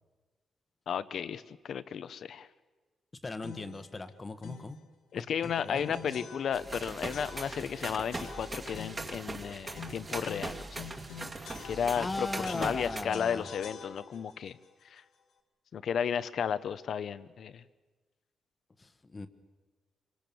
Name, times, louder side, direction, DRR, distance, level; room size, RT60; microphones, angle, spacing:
voice 1, 0.9-2.5 5.1-10.6 11.6-14.6 14.9-15.0 15.7-17.6, left 7 dB, 60° left, 14 dB, 0.9 m, -33 dB
voice 2, 3.2-4.8 5.1-5.9 12.0-13.5 18.8-19.3, left 2 dB, 25° left, 10 dB, 1.3 m, -38 dB
sound 1, 3.4-3.8 4.4-4.8 5.4-6.8 7.1-7.7 8.1-9.2 9.7-12.1 12.4-14.3, left 6 dB, 90° left, 2.7 m, -46 dB
sound 2, 6.5-13.0, right 2 dB, 25° right, 2.2 m, -40 dB
26.5 x 25.0 x 7.1 m, 1.3 s
cardioid pair, 135°, 0 cm